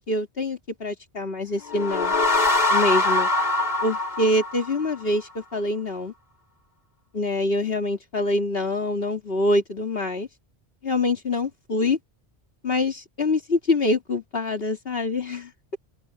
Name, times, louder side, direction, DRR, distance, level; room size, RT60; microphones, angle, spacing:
voice 1, 0.1-2.1 2.7-3.3 3.8-6.1 7.1-10.3 10.8-12.0 12.6-15.8, left 2 dB, 60° left, 2.8 m, -25 dB
sound 1, 1.6-5.1, left 2 dB, 40° left, 2.9 m, -23 dB
omnidirectional pair, 1.1 m